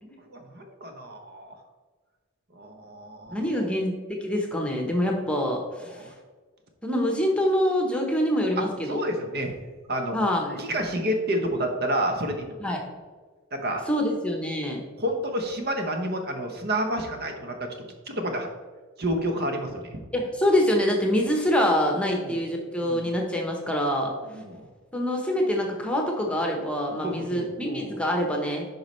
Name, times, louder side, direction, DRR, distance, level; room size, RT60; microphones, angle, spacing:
voice 1, 0.3-1.5 2.5-3.6 5.9-6.0 8.9-9.5 9.9-10.2 10.6-12.5 13.5-13.8 15.0-17.7 18.1-18.5 19.0-20.0 22.2-22.4 22.8-23.1 24.0-24.6 27.0-27.9, right 1 dB, 45° right, 4 dB, 0.9 m, -29 dB
voice 2, 3.3-6.0 6.8-9.0 10.1-10.6 12.6-12.8 13.9-14.8 20.1-24.1 24.9-28.7, equal, 5° left, 0 dB, 1.0 m, -25 dB
9.4 x 5.3 x 3.2 m, 1.4 s
head